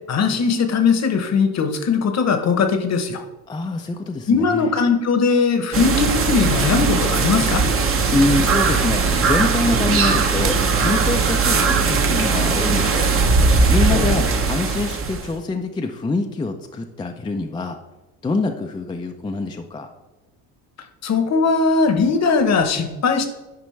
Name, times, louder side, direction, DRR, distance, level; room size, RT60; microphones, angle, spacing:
voice 1, 0.1-3.2 4.3-7.6 13.9-14.2 21.0-23.3, left 5 dB, 45° left, 7 dB, 1.0 m, -19 dB
voice 2, 3.5-4.7 8.1-13.1 13.7-17.8 18.2-19.9, left 2 dB, 10° left, 4 dB, 0.5 m, -25 dB
sound 1, 5.7-15.3, right 4 dB, 35° right, 0.9 m, -19 dB
9.2 x 5.1 x 3.2 m, 1.1 s
supercardioid pair, 95°, 38 cm